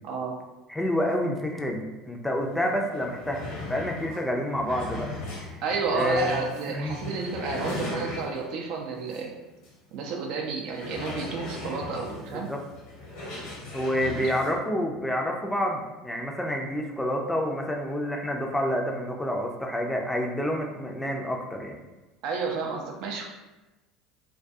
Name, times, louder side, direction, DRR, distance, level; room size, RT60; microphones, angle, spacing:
voice 1, 0.0-0.4 5.6-9.3 9.9-12.5 14.2-14.3 22.2-23.3, right 4 dB, 60° right, 2 dB, 0.4 m, -31 dB
voice 2, 0.7-5.1 5.4-5.6 5.9-7.0 12.3-12.6 13.7-21.8, equal, 10° left, 1 dB, 0.4 m, -28 dB
sound 1, 2.5-2.6 2.9-8.6 9.1-9.2 9.6-9.7 10.7-14.5, left 2 dB, 70° left, 1.0 m, -38 dB
2.3 x 2.2 x 2.5 m, 1.1 s
hypercardioid pair, 75°, 0 cm